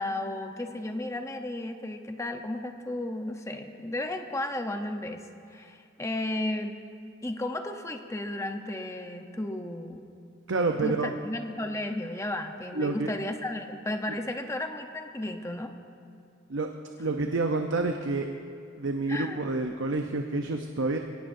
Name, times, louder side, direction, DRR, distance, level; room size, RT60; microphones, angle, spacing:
voice 1, 0.0-5.2 5.5-6.8 7.2-10.1 10.8-15.7 19.1-19.4, left 1 dB, 15° left, 5 dB, 0.9 m, -34 dB
voice 2, 10.5-11.1 12.7-13.1 16.5-16.7 17.0-18.3 18.8-21.0, right 3 dB, 85° right, 4 dB, 0.8 m, -28 dB
22.0 x 17.5 x 2.7 m, 2.3 s
head